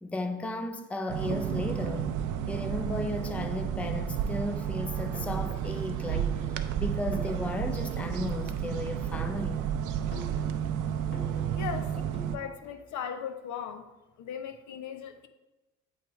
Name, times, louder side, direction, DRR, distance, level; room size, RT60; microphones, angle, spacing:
voice 1, 0.0-2.2 2.5-6.4 6.8-9.7, left 1 dB, 5° left, 0.4 m, -34 dB
sound 1, 1.1-12.4, right 9 dB, 80° right, 0.5 m, -32 dB
sound 2, 5.1-12.9, left 3 dB, 40° left, 1.4 m, -48 dB
voice 2, 11.5-11.9 12.3-13.9 14.2-15.3, left 8 dB, 75° left, 0.6 m, -37 dB
7.7 x 3.3 x 4.5 m
cardioid pair, 90°, 30 cm